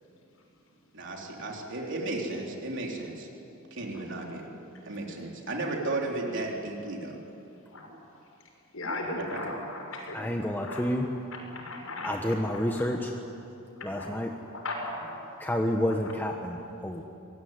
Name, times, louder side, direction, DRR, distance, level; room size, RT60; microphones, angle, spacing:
voice 1, 0.9-3.3 3.7-4.5 4.8-7.2 9.2-9.4, right 2 dB, 60° right, -1 dB, 3.9 m, -34 dB
voice 2, 8.7-10.2 10.4-10.9 11.3-12.9 13.8-14.2 14.4-15.2 16.0-16.1, left 2 dB, 75° left, 0 dB, 7.0 m, -37 dB
voice 3, 10.1-11.0 12.0-13.1 13.8-14.3 15.4-16.6 16.8-17.0, left 1 dB, 10° left, 2 dB, 1.2 m, -29 dB
24.5 x 20.0 x 9.5 m, 2.8 s
head